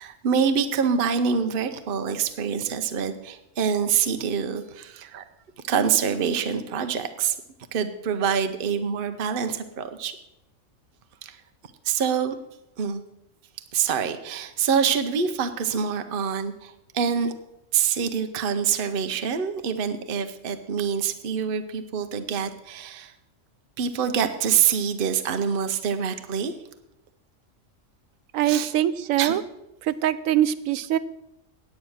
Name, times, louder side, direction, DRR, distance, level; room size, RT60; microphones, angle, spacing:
voice 1, 0.0-5.2 5.6-7.4 7.7-10.2 11.2-11.4 11.8-12.3 12.8-13.0 13.7-17.3 17.7-23.1 23.8-26.5 28.5-28.7 29.2-29.4, right 7 dB, 50° right, 8 dB, 0.8 m, -25 dB
voice 2, 28.3-29.4 29.8-31.0, right 12 dB, 90° right, 16 dB, 1.0 m, -23 dB
9.2 x 8.6 x 6.3 m, 0.89 s
omnidirectional pair, 1.4 m